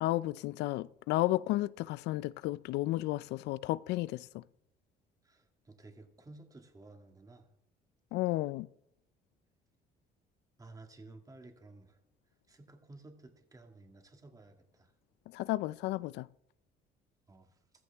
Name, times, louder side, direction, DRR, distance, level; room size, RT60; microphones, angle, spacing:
voice 1, 0.0-4.4 8.1-8.7 15.3-16.3, left 17 dB, 85° left, 0.4 m, -33 dB
voice 2, 5.2-7.5 10.6-12.0 12.5-14.9 17.3-17.6, right 2 dB, 20° right, 2.0 m, -54 dB
15.0 x 14.0 x 3.5 m
cardioid pair, 110°, 17 cm